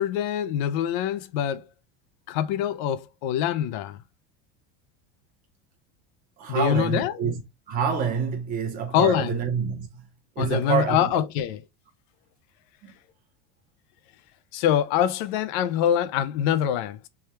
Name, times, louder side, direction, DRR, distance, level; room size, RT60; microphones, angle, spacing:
voice 1, 0.0-1.6 2.3-4.0 6.5-7.3 8.9-9.4 10.4-11.6 14.5-17.1, left 10 dB, 55° left, 0.5 m, -24 dB
voice 2, 6.4-7.4 7.7-9.9 10.4-11.1, right 7 dB, 30° right, 0.8 m, -27 dB
3.4 x 2.3 x 4.3 m
cardioid pair, 175°, 29 cm